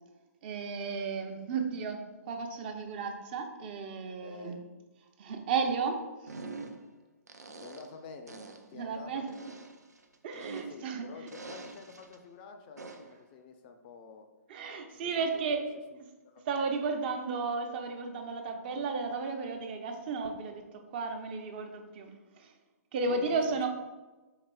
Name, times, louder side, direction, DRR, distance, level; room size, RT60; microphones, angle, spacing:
voice 1, 0.4-2.0 2.3-4.5 5.2-6.0 8.7-9.3 10.2-11.0 14.5-15.7 16.5-22.5 22.9-23.7, right 4 dB, 40° right, 4 dB, 0.5 m, -33 dB
voice 2, 4.2-4.7 7.6-9.6 10.3-14.3 14.9-15.6 15.9-17.1 23.1-23.7, left 4 dB, 35° left, 6 dB, 0.4 m, -49 dB
sound 1, 6.3-6.9 7.3-8.0 8.3-8.7 9.3-10.9 11.3-12.2 12.8-13.2, right 3 dB, 85° right, 0.5 m, -45 dB
4.8 x 4.0 x 2.2 m, 1.2 s
figure-of-eight pair, 130°, 9 cm